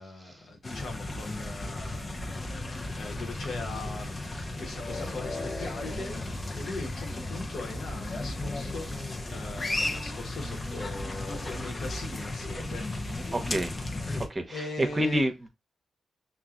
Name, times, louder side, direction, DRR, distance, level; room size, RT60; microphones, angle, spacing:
voice 1, 0.0-2.7 3.0-4.1 4.6-9.0 9.3-13.3 14.5-15.2, left 3 dB, 65° left, 1.3 m, -40 dB
sound 1, 0.6-14.3, left 2 dB, 40° left, 0.8 m, -35 dB
voice 2, 13.3-13.8 14.2-15.5, right 1 dB, 30° right, 0.9 m, -29 dB
5.6 x 2.5 x 2.5 m
supercardioid pair, 40°, 0 cm